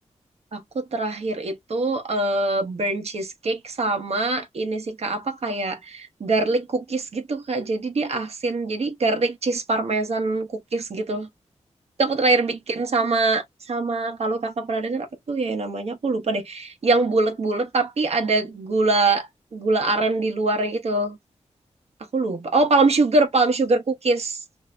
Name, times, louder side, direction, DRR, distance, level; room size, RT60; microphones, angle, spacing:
voice 1, 0.5-11.3 12.0-19.3 19.5-21.2 22.1-24.4, right 3 dB, 60° right, 0.8 m, -23 dB
3.1 x 2.7 x 2.5 m
wide cardioid pair, 100°, 12 cm